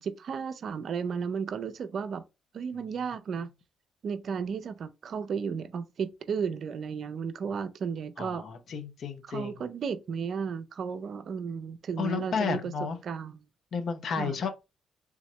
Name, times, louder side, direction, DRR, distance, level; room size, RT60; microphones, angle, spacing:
voice 1, 0.0-2.3 2.5-3.5 4.0-8.4 9.2-12.7 13.0-13.4 14.2-14.4, right 6 dB, 60° right, 0.4 m, -34 dB
voice 2, 8.2-9.6 12.0-13.0 13.7-14.5, left 6 dB, 60° left, 0.7 m, -32 dB
3.5 x 3.1 x 3.1 m
cardioid pair, 90°, 0 cm